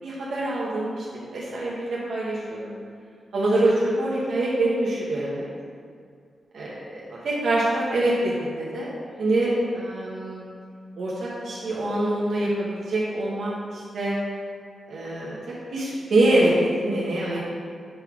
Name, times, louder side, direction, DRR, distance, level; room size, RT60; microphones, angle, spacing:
voice 1, 0.0-2.7 3.3-5.5 6.5-6.8 7.1-8.9 9.2-10.4 11.0-14.2 14.9-17.4, right 1 dB, 75° right, -7 dB, 1.2 m, -25 dB
6.8 x 4.0 x 4.6 m, 2.2 s
wide cardioid pair, 105°, 0 cm